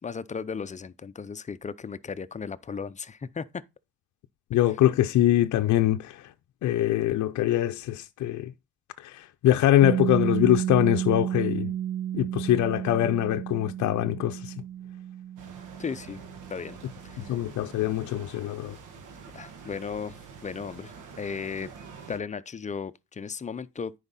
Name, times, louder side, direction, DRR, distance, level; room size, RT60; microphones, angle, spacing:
voice 1, 0.0-3.6 4.7-4.8 15.8-16.2 16.5-16.8 17.0-17.4 19.3-20.2 20.4-20.9 21.2-21.7 22.1-23.9, left 6 dB, 25° left, 0.5 m, -35 dB
voice 2, 4.5-6.2 6.6-8.5 9.0-11.7 12.1-14.5 17.3-18.8, left 13 dB, 70° left, 0.6 m, -23 dB
Piano, 9.8-17.1, right 11 dB, 65° right, 0.6 m, -32 dB
sound 1, 15.4-22.2, right 5 dB, 80° right, 1.4 m, -46 dB
9.6 x 5.0 x 4.1 m
cardioid pair, 90°, 30 cm